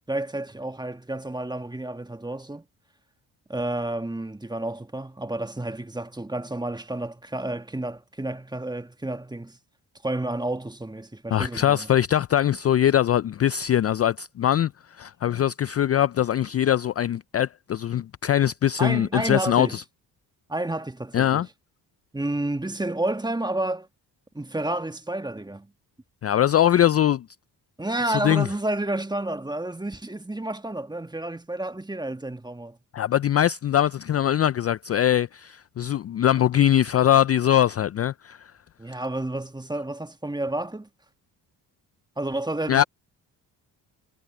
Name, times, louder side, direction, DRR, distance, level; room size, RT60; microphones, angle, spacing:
voice 1, 0.1-2.6 3.5-9.6 10.0-11.9 18.8-19.8 20.5-21.5 22.1-23.9 24.3-25.7 27.8-32.8 38.8-40.9 42.2-42.8, right 1 dB, 10° right, 1.4 m, -30 dB
voice 2, 11.3-14.7 15.0-19.8 21.1-21.5 26.2-27.2 28.1-28.5 32.9-38.5 42.7-42.8, left 11 dB, 35° left, 0.4 m, -22 dB
supercardioid pair, 60°, 44 cm